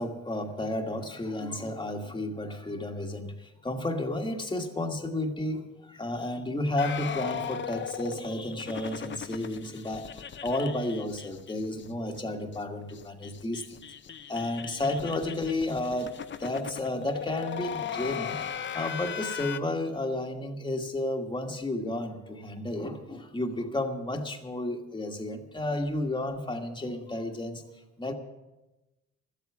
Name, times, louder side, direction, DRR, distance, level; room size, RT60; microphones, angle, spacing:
voice 1, 0.0-10.1 10.4-13.8 14.3-18.4 18.7-27.6 28.0-28.1, left 1 dB, 15° left, 3 dB, 1.5 m, -32 dB
sound 1, 6.8-11.9 12.1-12.2 12.5-12.6 12.9-19.6, left 8 dB, 40° left, 0.7 m, -38 dB
13.0 x 8.3 x 9.6 m, 1.0 s
cardioid pair, 90°, 30 cm